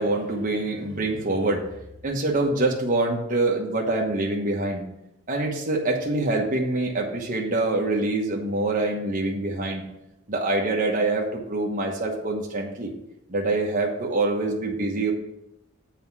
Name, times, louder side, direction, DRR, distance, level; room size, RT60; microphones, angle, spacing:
voice 1, 0.0-1.6 2.0-4.8 5.3-9.8 10.3-12.9 13.3-15.1, right 2 dB, 40° right, -1 dB, 1.2 m, -25 dB
7.6 x 4.7 x 6.0 m, 0.84 s
head